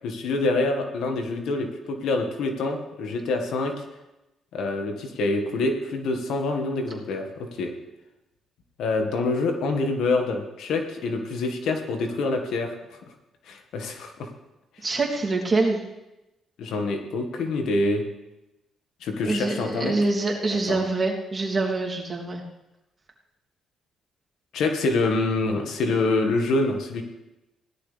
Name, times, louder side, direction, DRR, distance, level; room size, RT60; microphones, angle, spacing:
voice 1, 0.0-3.7 4.5-7.7 8.8-13.0 13.5-14.3 16.6-18.0 19.0-20.0 20.7-20.8 24.5-27.0, left 3 dB, 80° left, 4 dB, 1.7 m, -26 dB
voice 2, 14.8-15.8 19.2-22.4, right 3 dB, 30° right, -2 dB, 3.0 m, -25 dB
17.5 x 11.5 x 3.5 m, 0.96 s
cardioid pair, 90°, 0 cm